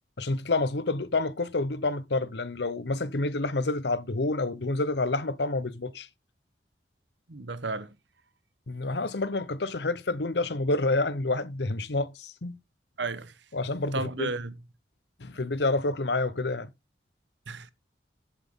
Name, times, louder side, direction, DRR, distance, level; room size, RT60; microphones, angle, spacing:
voice 1, 0.2-6.1 8.7-12.6 13.5-14.3 15.2-16.7, left 2 dB, 70° left, 0.9 m, -28 dB
voice 2, 7.3-7.9 13.0-13.4 13.9-14.6 17.5-17.7, right 3 dB, 85° right, 1.1 m, -33 dB
10.5 x 8.2 x 3.7 m
head